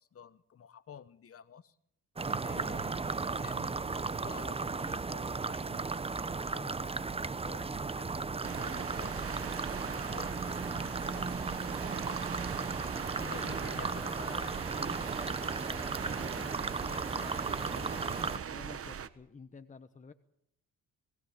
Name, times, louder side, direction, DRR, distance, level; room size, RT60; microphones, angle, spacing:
voice 1, 0.0-1.8 2.4-6.1 6.4-9.3 10.1-11.7 13.2-17.5, left 7 dB, 45° left, 15 dB, 1.0 m, -52 dB
sound 1, 2.2-18.4, right 4 dB, 20° right, 0.7 m, -35 dB
sound 2, 8.4-19.1, right 8 dB, 45° right, 1.1 m, -41 dB
voice 2, 13.3-14.0 17.1-20.1, left 4 dB, 25° left, 9 dB, 1.0 m, -51 dB
20.5 x 17.5 x 8.5 m, 0.77 s
cardioid pair, 100°, 31 cm